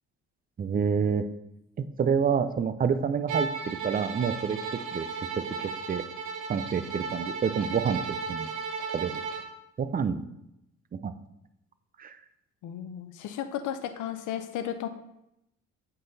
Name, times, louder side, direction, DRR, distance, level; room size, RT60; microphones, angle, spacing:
voice 1, 0.6-1.2 1.8-4.6 4.9-5.1 5.4-5.5 5.9-6.0 6.5-8.0 8.3-8.5 8.9-9.2 9.8-10.2 10.9-11.1 12.0-12.2, right 6 dB, 30° right, 11 dB, 0.5 m, -27 dB
Bowed string instrument, 3.3-9.5, right 5 dB, 90° right, 0.9 m, -34 dB
voice 2, 12.6-14.9, left 10 dB, 80° left, 8 dB, 0.6 m, -34 dB
7.8 x 4.0 x 4.0 m, 0.83 s
cardioid pair, 90°, 30 cm